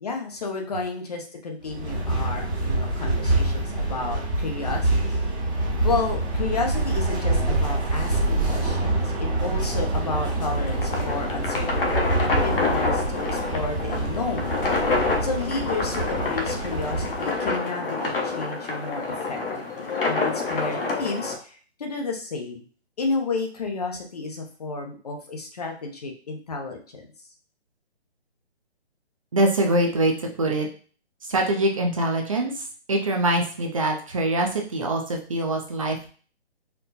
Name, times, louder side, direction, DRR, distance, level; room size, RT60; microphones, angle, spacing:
voice 1, 0.0-5.2 5.8-14.6 15.2-22.7 23.0-27.1, left 3 dB, 35° left, 2 dB, 0.7 m, -32 dB
sound 1, 1.6-17.4, right 2 dB, ahead, 0.8 m, -26 dB
sound 2, 10.1-21.3, left 3 dB, 55° left, 1.0 m, -28 dB
voice 2, 29.3-30.7 31.2-36.1, right 1 dB, 30° right, 2 dB, 0.6 m, -24 dB
4.4 x 2.1 x 4.0 m, 0.41 s
hypercardioid pair, 160°, 33 cm